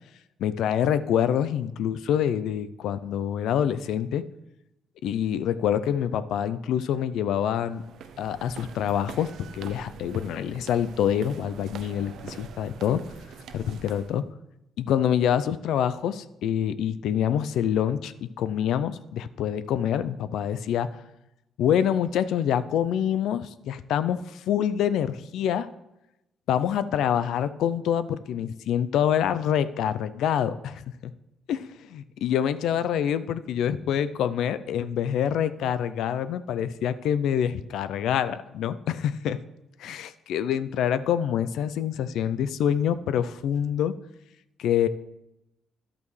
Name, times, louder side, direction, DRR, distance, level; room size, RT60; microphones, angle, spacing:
voice 1, 0.4-4.2 5.0-7.8 8.2-13.0 13.5-14.2 14.8-20.9 21.6-25.7 26.5-31.1 31.5-39.4 39.8-43.9 44.6-44.9, left 9 dB, 80° left, 14 dB, 0.4 m, -26 dB
sound 1, 7.7-14.2, right 7 dB, 75° right, 0.6 m, -44 dB
11.0 x 8.4 x 3.2 m, 0.90 s
cardioid pair, 90°, 0 cm